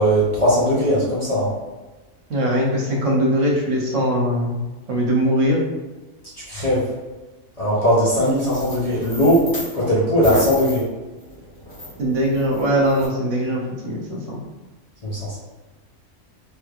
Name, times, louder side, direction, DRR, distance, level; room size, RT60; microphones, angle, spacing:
voice 1, 0.0-1.5 6.5-6.9 7.6-10.9 15.0-15.4, equal, 40° left, -8 dB, 0.6 m, -19 dB
voice 2, 2.3-4.6 4.9-5.6 12.0-14.4, equal, 70° right, -1 dB, 1.0 m, -21 dB
sound 1, 8.1-9.8 10.2-13.1, left 1 dB, 15° left, 1.3 m, -33 dB
3.2 x 3.1 x 2.4 m, 1.2 s
omnidirectional pair, 1.4 m